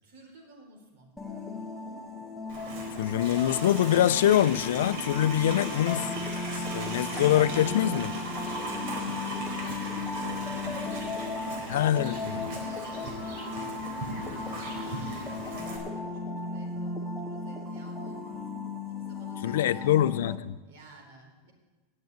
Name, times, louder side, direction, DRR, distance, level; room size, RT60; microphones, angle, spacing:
voice 1, 0.0-1.1 8.8-13.5 13.9-18.4 18.9-20.0 20.6-21.5, right 1 dB, 70° right, 2 dB, 3.9 m, -53 dB
sound 1, 1.2-20.4, left 3 dB, 5° left, 1.0 m, -36 dB
Livestock farm animals working animals, 2.5-15.8, right 1 dB, 50° right, 3.7 m, -38 dB
voice 2, 3.0-6.1 6.7-8.2 11.7-12.4 19.4-20.6, left 11 dB, 85° left, 15 dB, 0.5 m, -24 dB
10.5 x 7.8 x 9.3 m, 1.2 s
supercardioid pair, 175°, 0 cm